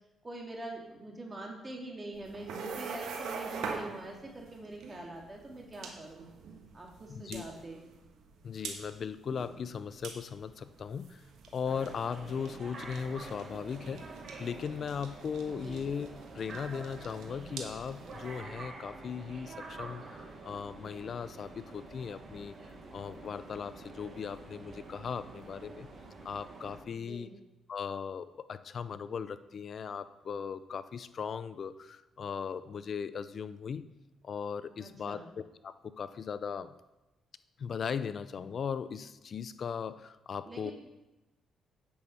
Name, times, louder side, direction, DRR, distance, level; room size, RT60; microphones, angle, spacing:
voice 1, 0.2-6.2 6.7-7.8 15.4-15.8 26.9-27.3 34.8-35.3 40.5-40.7, right 2 dB, 25° right, 0 dB, 2.3 m, -44 dB
sound 1, 2.1-18.4, right 5 dB, 80° right, 1.4 m, -45 dB
voice 2, 7.1-7.4 8.4-11.2 11.5-14.1 14.4-16.1 16.3-22.6 22.9-25.9 26.2-27.3 27.7-33.8 34.2-36.8 37.6-40.7, left 6 dB, 50° left, 14 dB, 0.5 m, -38 dB
sound 2, 11.7-26.8, right 3 dB, 45° right, 1.6 m, -47 dB
8.6 x 6.2 x 5.4 m, 0.99 s
cardioid pair, 90°, 0 cm